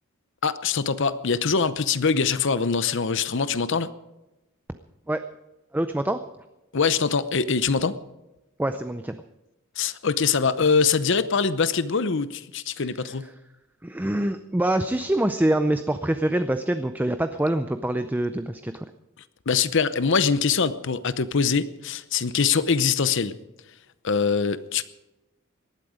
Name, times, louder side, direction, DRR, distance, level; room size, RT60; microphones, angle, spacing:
voice 1, 0.4-3.9 6.7-7.9 9.8-13.3 19.5-23.3 24.0-24.9, left 5 dB, 60° left, 15 dB, 0.8 m, -23 dB
voice 2, 5.7-6.2 8.6-9.2 12.8-12.9 13.8-18.9, right 1 dB, 10° right, 9 dB, 0.5 m, -25 dB
18.5 x 12.5 x 5.0 m, 1.0 s
head